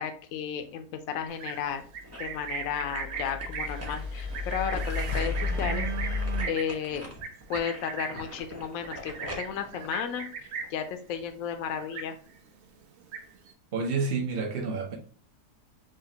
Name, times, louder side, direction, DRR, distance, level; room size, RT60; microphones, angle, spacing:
voice 1, 0.0-1.8 2.1-6.2 6.5-7.2 7.5-12.1, left 8 dB, 65° left, 7 dB, 1.0 m, -34 dB
Livestock farm animals working animals, 1.3-10.9 11.2-11.6 11.8-12.5 12.8-13.5, right 6 dB, 90° right, 0.6 m, -38 dB
sound 1, 1.6-2.4 2.8-10.9 11.3-11.4, equal, 20° right, 0.4 m, -44 dB
sound 2, 2.3-6.4, left 3 dB, 75° right, 1.7 m, -33 dB
voice 2, 13.7-15.0, right 4 dB, 45° right, 1 dB, 0.9 m, -29 dB
5.0 x 2.5 x 2.7 m, 0.41 s
omnidirectional pair, 1.7 m